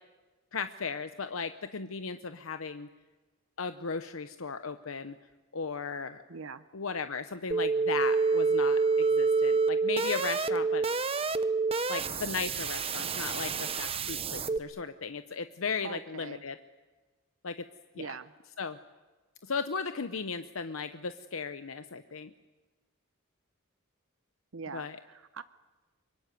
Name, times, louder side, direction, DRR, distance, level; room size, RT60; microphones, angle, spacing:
voice 1, 0.5-2.9 3.6-5.1 5.5-6.2 6.7-10.8 11.9-16.6 17.4-17.6 17.9-18.1 18.6-18.8 19.4-22.3 24.7-25.0, left 5 dB, 75° left, 10 dB, 0.9 m, -36 dB
voice 2, 6.3-6.6 15.8-16.4 18.0-18.3 24.5-25.4, right 5 dB, 70° right, 13 dB, 0.8 m, -42 dB
sound 1, 7.5-14.6, right 4 dB, 25° right, 0.9 m, -28 dB
24.0 x 24.0 x 9.5 m, 1.3 s
head